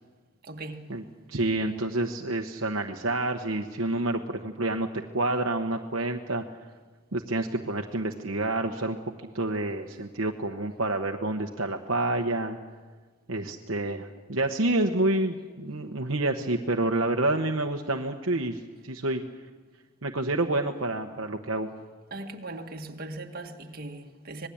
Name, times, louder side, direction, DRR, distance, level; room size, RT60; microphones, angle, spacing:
voice 1, 0.4-0.9 22.1-24.5, right 2 dB, 45° right, 1.9 m, -39 dB
voice 2, 1.3-4.9 5.1-6.4 7.1-9.0 9.3-12.6 13.3-19.2 20.0-21.7, right 2 dB, 60° right, 1.1 m, -28 dB
26.0 x 20.0 x 8.6 m
head